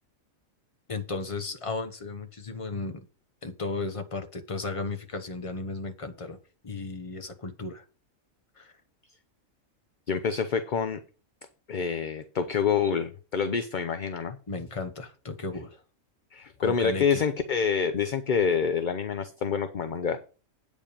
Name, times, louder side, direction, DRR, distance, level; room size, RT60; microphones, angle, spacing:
voice 1, 0.9-3.1 3.4-6.4 6.6-7.8 8.6-8.7 14.5-15.8 16.6-17.2, left 3 dB, 25° left, 8 dB, 0.9 m, -35 dB
voice 2, 10.1-11.0 11.7-14.4 16.3-20.2, left 6 dB, 50° left, 10 dB, 0.7 m, -27 dB
8.8 x 5.2 x 6.6 m, 0.35 s
omnidirectional pair, 1.4 m